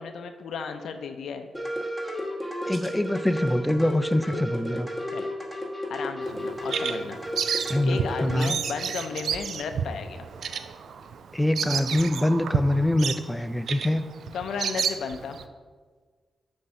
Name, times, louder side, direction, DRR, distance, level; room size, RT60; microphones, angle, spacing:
voice 1, 0.0-1.5 5.1-5.3 5.9-7.2 7.8-10.3 14.3-15.4, left 5 dB, 90° left, 7 dB, 0.4 m, -34 dB
sound 1, 1.5-8.5, equal, 10° right, 1.1 m, -32 dB
voice 2, 2.7-4.9 7.7-8.6 11.3-14.0, left 1 dB, 10° left, 10 dB, 0.3 m, -24 dB
Bird vocalization bird call bird song, 6.2-15.5, right 7 dB, 85° right, 0.3 m, -31 dB
7.3 x 2.6 x 5.7 m, 1.5 s
cardioid pair, 80°, 0 cm